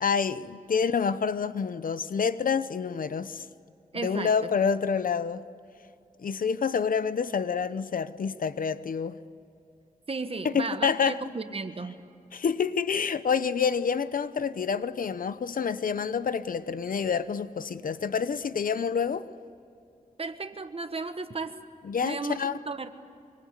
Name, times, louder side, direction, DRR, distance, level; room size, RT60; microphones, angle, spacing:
voice 1, 0.0-3.5 4.0-5.5 6.2-9.2 10.4-11.2 12.3-19.3 21.8-22.6, left 6 dB, 70° left, 0.8 m, -28 dB
voice 2, 3.9-4.5 10.1-12.0 20.2-21.6 22.0-22.9, right 3 dB, 40° right, 1.4 m, -34 dB
25.0 x 24.0 x 8.2 m
wide cardioid pair, 90°, 15 cm